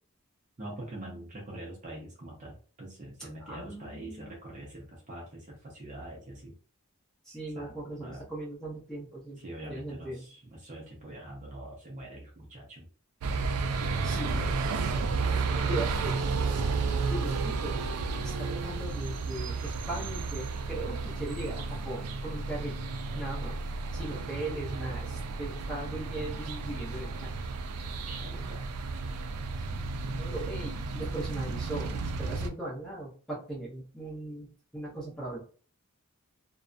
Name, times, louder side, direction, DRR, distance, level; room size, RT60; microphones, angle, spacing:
voice 1, 0.6-6.5 7.5-8.2 9.4-12.9 15.1-16.0 28.0-28.6, right 1 dB, 35° right, -1 dB, 0.6 m, -44 dB
voice 2, 3.2-4.4 7.2-9.4 9.7-10.3 13.5-14.6 15.6-16.8 17.1-17.8 18.2-23.6 23.9-27.4 29.7-35.4, right 1 dB, 5° left, -6 dB, 0.8 m, -39 dB
sound 1, 13.2-32.5, right 4 dB, 85° right, 0.3 m, -32 dB
2.5 x 2.1 x 2.4 m, 0.41 s
head